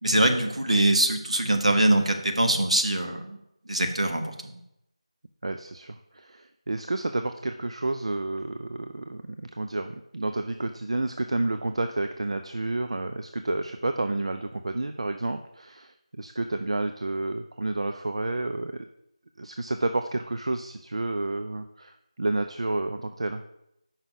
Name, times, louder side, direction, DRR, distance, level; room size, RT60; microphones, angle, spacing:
voice 1, 0.0-3.4 3.7-4.5, right 1 dB, 75° right, 4 dB, 1.2 m, -23 dB
voice 2, 5.4-18.9 19.4-23.4, right 2 dB, 60° right, 7 dB, 0.5 m, -30 dB
7.1 x 5.6 x 4.9 m, 0.82 s
figure-of-eight pair, 165°, 3 cm